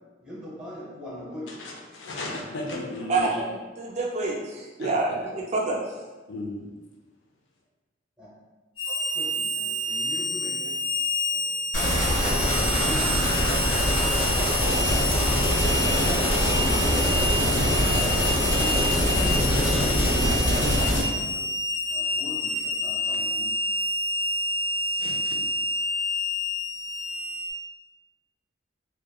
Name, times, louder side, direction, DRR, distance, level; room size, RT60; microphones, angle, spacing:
voice 1, 0.2-1.6 8.2-8.3 8.9-10.8 11.3-11.6 12.7-13.7 14.4-15.0 16.0-17.1 18.5-21.5 21.9-23.5, left 1 dB, 5° right, -8 dB, 0.7 m, -41 dB
voice 2, 1.5-3.3 4.8-4.9 6.3-6.7 24.9-25.4, left 2 dB, 70° left, 0 dB, 0.4 m, -35 dB
voice 3, 3.1-3.5 3.8-5.8, right 3 dB, 35° right, -2 dB, 0.3 m, -27 dB
Harmonica, 8.8-27.5, left 1 dB, 30° left, 1.0 m, -29 dB
sound 1, 11.7-21.0, left 1 dB, 85° left, 1.2 m, -23 dB
2.9 x 2.1 x 2.2 m, 1.2 s
head